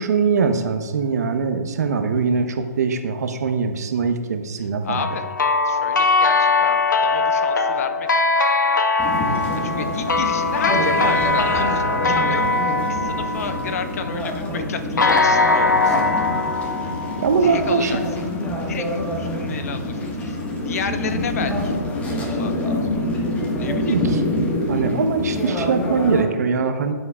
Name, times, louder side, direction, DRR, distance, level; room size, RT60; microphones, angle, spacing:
voice 1, 0.0-5.0 17.2-18.0 23.9-26.9, right 5 dB, 60° right, 7 dB, 1.1 m, -22 dB
voice 2, 4.8-5.3 5.6-8.1 9.6-16.1 17.4-18.0 18.7-20.4 20.7-21.8 22.3-23.0 23.6-24.0, left 6 dB, 55° left, 9 dB, 0.9 m, -31 dB
sound 1, 5.0-14.2 15.0-17.9, left 3 dB, 80° left, 1.0 m, -21 dB
sound 2, 9.0-26.2, left 1 dB, 15° left, 1.6 m, -26 dB
16.5 x 7.7 x 2.4 m, 1.5 s
hypercardioid pair, 140°, 10 cm